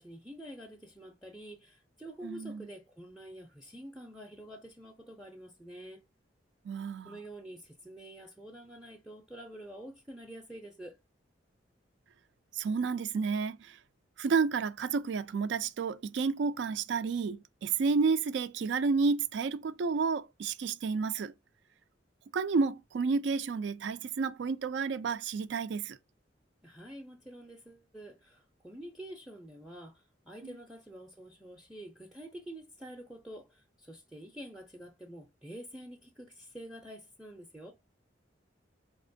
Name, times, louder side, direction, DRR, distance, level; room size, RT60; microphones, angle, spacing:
voice 1, 0.0-6.0 7.0-11.0 26.6-37.7, right 1 dB, ahead, 0.5 m, -47 dB
voice 2, 2.2-2.6 6.6-7.1 12.5-13.8 14.2-21.3 22.3-26.0 30.4-30.5, right 5 dB, 70° right, 0.4 m, -31 dB
4.2 x 2.9 x 2.5 m
head